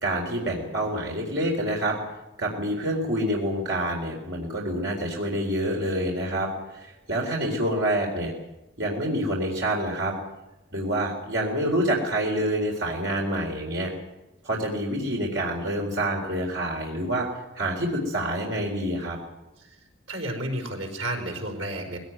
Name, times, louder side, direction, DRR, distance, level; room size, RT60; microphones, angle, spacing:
voice 1, 0.0-2.0 2.4-8.3 8.8-10.1 10.7-13.9 14.4-17.3 17.5-19.2, right 1 dB, 60° right, -1 dB, 4.1 m, -27 dB
voice 2, 20.1-22.0, right 1 dB, 80° right, 2 dB, 5.0 m, -32 dB
20.5 x 17.5 x 9.3 m, 0.97 s
head